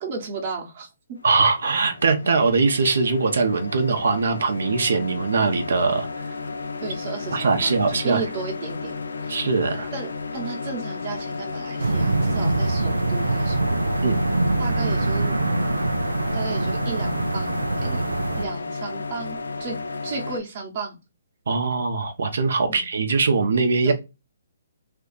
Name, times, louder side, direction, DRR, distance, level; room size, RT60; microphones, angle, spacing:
voice 1, 0.0-0.9 6.8-9.4 9.9-13.8 14.6-15.4 16.3-18.0 18.4-19.8 20.0-21.0 22.7-22.9 23.8-23.9, right 4 dB, 40° right, -1 dB, 1.0 m, -34 dB
sound 1, 1.2-20.4, left 3 dB, 80° left, 0.4 m, -33 dB
voice 2, 1.2-6.1 6.8-6.9 7.3-8.2 9.3-9.9 14.0-14.2 21.5-23.9, right 4 dB, 65° right, 6 dB, 0.7 m, -21 dB
sound 2, 11.8-18.5, right 2 dB, 85° right, 0.4 m, -24 dB
2.7 x 2.4 x 3.8 m, 0.25 s
figure-of-eight pair, 135°, 0 cm